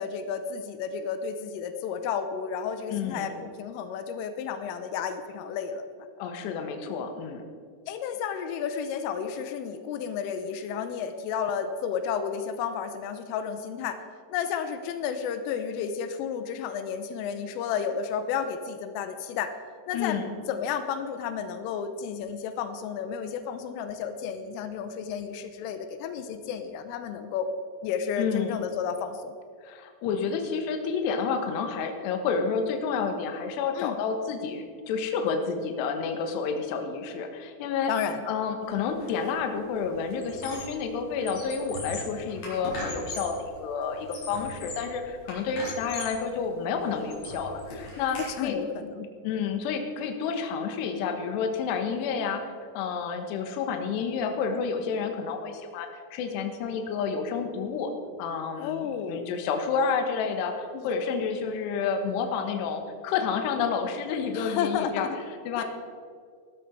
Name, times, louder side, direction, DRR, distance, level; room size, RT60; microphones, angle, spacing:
voice 1, 0.0-5.8 7.9-14.0 14.3-19.6 19.9-20.2 20.5-27.5 27.8-29.4 33.8-34.0 37.9-38.3 48.2-49.0 58.6-59.3 60.7-60.9 64.3-65.2 65.6-65.7, left 7 dB, 90° left, 9 dB, 3.4 m, -32 dB
voice 2, 2.9-3.3 6.2-7.4 19.9-20.4 28.2-28.6 29.6-37.9 38.3-48.6 49.0-57.9 58.2-65.1 65.5-65.6, left 5 dB, 70° left, 5 dB, 3.1 m, -30 dB
Squeak, 39.0-39.3 39.6-40.8 41.2-43.4 43.9-44.9 45.3-46.2 46.7-48.3, left 2 dB, 45° left, 5.8 m, -39 dB
16.5 x 12.5 x 4.6 m, 2.1 s
omnidirectional pair, 5.8 m